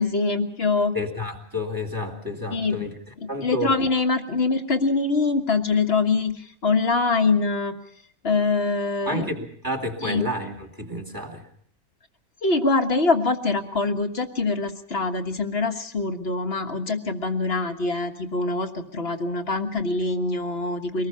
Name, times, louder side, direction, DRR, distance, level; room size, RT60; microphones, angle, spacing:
voice 1, 0.0-1.0 2.5-2.9 3.4-7.7 8.2-9.3 10.0-10.3 12.4-21.1, left 3 dB, 45° left, 5 dB, 1.7 m, -24 dB
voice 2, 0.9-2.9 3.3-3.8 9.1-11.5, left 1 dB, 15° right, 2 dB, 2.6 m, -30 dB
24.0 x 19.5 x 5.7 m, 0.63 s
omnidirectional pair, 1.5 m